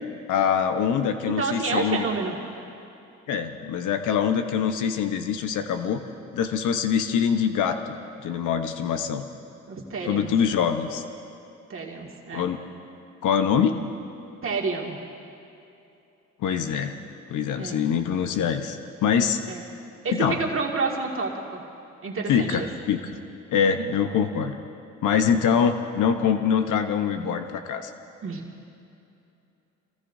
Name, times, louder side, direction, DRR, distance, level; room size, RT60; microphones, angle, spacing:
voice 1, 0.3-2.1 3.3-6.0 6.3-9.2 10.0-11.0 12.3-12.6 13.2-13.8 16.4-17.0 17.3-19.4 20.1-20.4 22.3-23.0 23.5-24.5 25.0-27.9, left 7 dB, 80° left, 7 dB, 1.0 m, -24 dB
voice 2, 1.2-2.4 9.7-10.3 11.7-12.5 14.4-15.0 17.6-17.8 19.5-19.6 20.0-21.6 22.0-22.7 28.2-28.5, right 4 dB, 45° right, -1 dB, 2.1 m, -29 dB
26.0 x 18.5 x 2.7 m, 2.8 s
cardioid pair, 90°, 30 cm